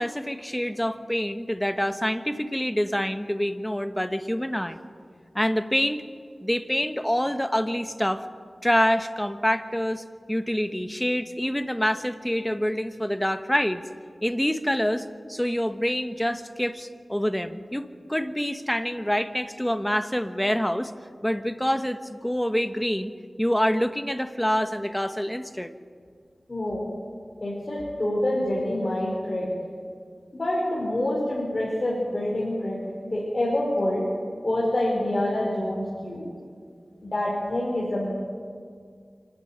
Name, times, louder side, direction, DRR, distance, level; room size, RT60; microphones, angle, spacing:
voice 1, 0.0-4.8 5.3-6.0 6.4-8.2 8.6-13.8 14.2-20.9 21.2-23.1 23.4-25.7, equal, 10° left, 9 dB, 1.2 m, -26 dB
voice 2, 26.5-26.9 27.4-29.5 30.3-34.1 34.4-36.3 37.0-38.1, left 1 dB, 45° left, -4 dB, 4.9 m, -26 dB
26.0 x 12.5 x 9.3 m, 2.1 s
wide cardioid pair, 60°, 0 cm